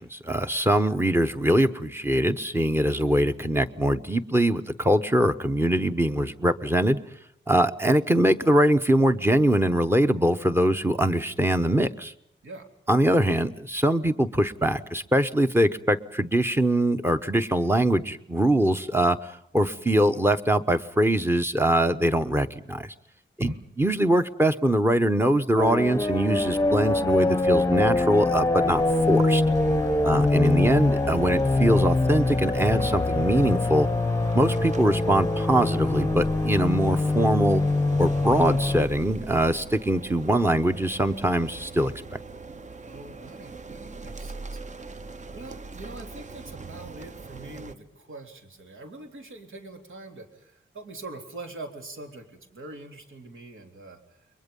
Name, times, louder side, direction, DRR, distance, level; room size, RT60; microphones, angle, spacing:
voice 1, 0.0-7.0 7.5-12.1 12.9-22.9 23.4-29.4 30.0-33.9 34.3-37.6 38.0-41.9, right 1 dB, 10° right, 9 dB, 1.0 m, -23 dB
sound 1, 25.6-38.8, left 2 dB, 15° left, 0.9 m, -24 dB
sound 2, 28.6-47.8, right 3 dB, 35° right, 0.9 m, -41 dB
voice 2, 29.8-30.1 42.8-45.1 45.3-54.0, right 2 dB, 75° right, 4 dB, 3.6 m, -43 dB
30.0 x 22.5 x 5.4 m, 0.73 s
wide cardioid pair, 165°, 21 cm